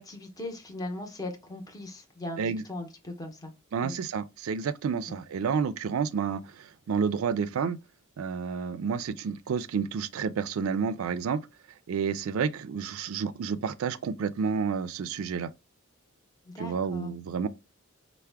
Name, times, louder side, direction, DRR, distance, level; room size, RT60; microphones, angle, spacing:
voice 1, 0.0-2.4 2.7-3.5 3.8-3.9 5.1-5.2 16.5-17.1, left 2 dB, 15° left, 0.7 m, -38 dB
voice 2, 3.7-7.8 8.2-11.4 11.9-15.5 16.6-17.5, right 6 dB, 75° right, 0.4 m, -30 dB
4.5 x 2.1 x 3.3 m
head